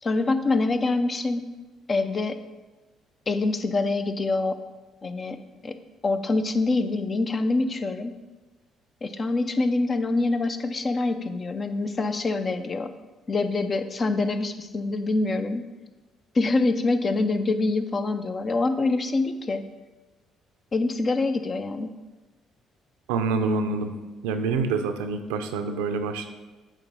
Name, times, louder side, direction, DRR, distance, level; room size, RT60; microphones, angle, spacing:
voice 1, 0.0-1.4 1.9-2.4 3.3-4.6 5.0-5.4 5.6-5.7 6.0-8.1 9.0-12.9 13.3-15.6 16.3-19.6 20.7-21.9, left 3 dB, 40° left, 9 dB, 0.6 m, -25 dB
voice 2, 23.1-23.9 24.2-26.3, right 4 dB, 90° right, 6 dB, 0.5 m, -26 dB
8.3 x 3.0 x 5.4 m, 1.2 s
supercardioid pair, 60°, 0 cm